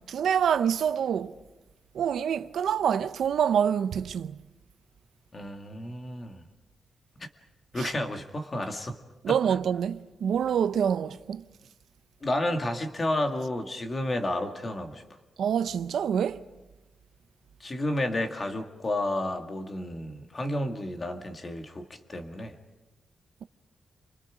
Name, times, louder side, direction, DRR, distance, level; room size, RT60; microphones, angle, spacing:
voice 1, 0.1-1.3 1.9-4.3 7.8-7.9 9.2-11.4 15.4-16.4, right 8 dB, 80° right, 0.7 m, -26 dB
voice 2, 5.3-6.4 7.7-9.0 9.3-9.4 12.2-15.0 17.6-21.8 22.1-22.5, left 1 dB, 30° left, 2.1 m, -31 dB
30.0 x 24.5 x 5.1 m
wide cardioid pair, 135°, 0 cm